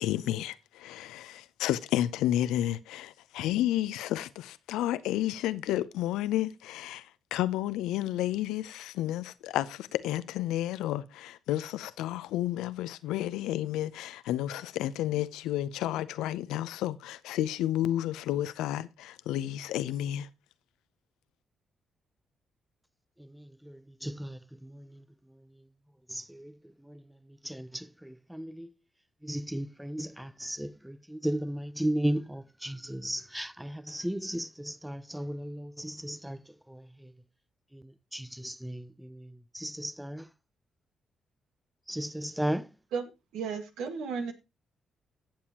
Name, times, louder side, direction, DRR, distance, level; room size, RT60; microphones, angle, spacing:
voice 1, 0.0-20.3, left 13 dB, 85° left, 0.6 m, -31 dB
voice 2, 23.2-25.0 25.3-25.5 26.1-27.0 27.3-28.7 29.2-37.1 37.7-40.3 41.9-42.7, right 1 dB, 5° right, 0.6 m, -36 dB
voice 3, 42.9-44.3, right 5 dB, 80° right, 1.8 m, -34 dB
16.0 x 7.2 x 2.9 m
supercardioid pair, 55°, 0 cm